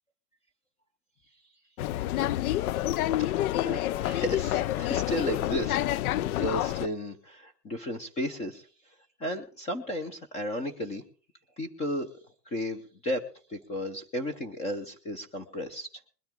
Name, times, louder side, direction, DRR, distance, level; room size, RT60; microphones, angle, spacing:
sound 1, 1.8-6.9, left 14 dB, 65° left, 0.5 m, -28 dB
voice 1, 3.2-5.8 6.2-8.7 9.2-11.0 11.6-12.1 12.5-13.2 13.5-15.9, equal, 15° left, 8 dB, 0.7 m, -34 dB
21.5 x 10.5 x 3.7 m, 0.40 s
supercardioid pair, 160°, 48 cm